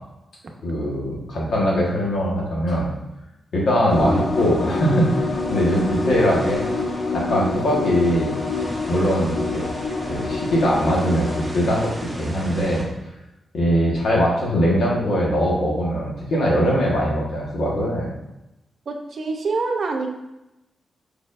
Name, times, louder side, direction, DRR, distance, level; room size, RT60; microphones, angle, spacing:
voice 1, 0.6-2.9 3.5-6.7 7.1-8.4 8.9-9.7 10.0-11.9 12.2-12.9 13.5-18.1, equal, 80° left, -3 dB, 1.3 m, -21 dB
sound 1, 3.9-11.5, left 3 dB, 55° left, 0.4 m, -27 dB
sound 2, 3.9-12.8, equal, 5° right, 1.0 m, -36 dB
voice 2, 3.9-4.3 18.9-20.1, right 3 dB, 50° right, 3 dB, 0.6 m, -26 dB
4.9 x 4.4 x 2.5 m, 0.93 s
wide cardioid pair, 120°, 0 cm